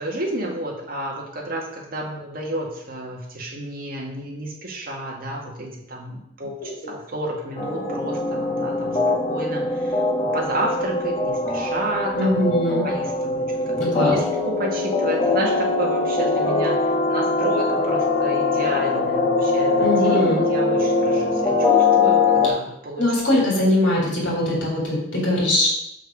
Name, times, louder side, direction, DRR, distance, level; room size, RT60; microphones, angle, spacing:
voice 1, 0.0-16.8 17.1-23.3, right 1 dB, 50° right, -2 dB, 2.0 m, -31 dB
sound 1, 7.6-22.5, left 3 dB, 30° left, 1.2 m, -22 dB
voice 2, 12.1-12.8 13.8-14.2 19.8-20.4 23.0-25.7, left 1 dB, 70° left, -2 dB, 3.3 m, -21 dB
6.6 x 6.2 x 5.3 m, 0.79 s
head